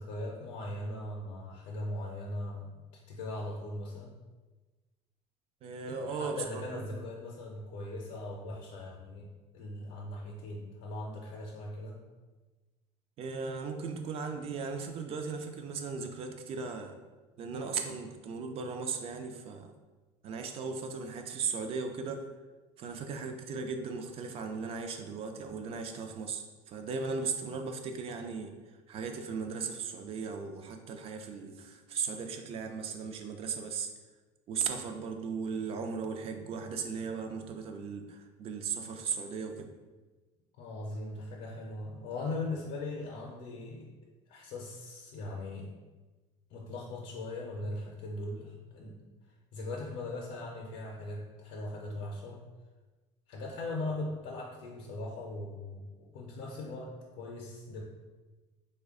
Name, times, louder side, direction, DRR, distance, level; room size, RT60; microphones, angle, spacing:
voice 1, 0.0-4.1 5.9-12.0 40.6-43.9 44.3-45.8 46.5-52.4 53.3-57.8, left 2 dB, 70° left, -2 dB, 0.5 m, -40 dB
voice 2, 5.6-6.8 13.2-17.0 17.4-19.7 20.2-22.3 22.8-28.5 28.9-33.9 34.5-39.7, right 5 dB, 45° right, 5 dB, 0.4 m, -37 dB
3.2 x 2.2 x 3.6 m, 1.2 s
cardioid pair, 130°, 14 cm